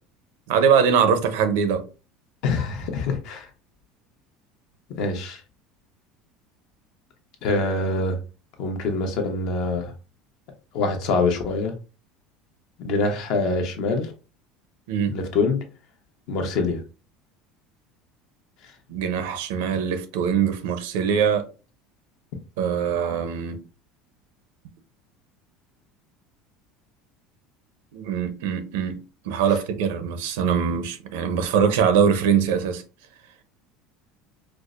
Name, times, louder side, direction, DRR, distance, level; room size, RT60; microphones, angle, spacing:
voice 1, 0.5-1.8 14.9-15.2 18.9-21.5 22.6-23.6 27.9-32.8, right 7 dB, 90° right, 0.6 m, -22 dB
voice 2, 2.4-3.5 5.0-5.4 7.4-8.2 8.6-9.9 10.7-11.7 12.8-14.1 15.1-15.6 16.3-16.8, left 3 dB, 55° left, 0.9 m, -24 dB
4.6 x 2.1 x 2.5 m
cardioid pair, 150°, 0 cm